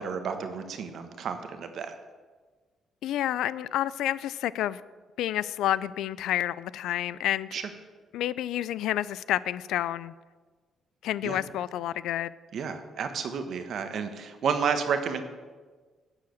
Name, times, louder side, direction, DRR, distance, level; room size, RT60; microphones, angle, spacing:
voice 1, 0.0-1.9 7.5-7.6 11.2-11.4 12.5-15.2, right 6 dB, 65° right, 8 dB, 1.2 m, -31 dB
voice 2, 3.0-4.8 5.2-7.6 8.1-10.1 11.0-12.3, left 12 dB, 85° left, 18 dB, 0.3 m, -29 dB
12.0 x 4.9 x 8.4 m, 1.4 s
cardioid pair, 90°, 0 cm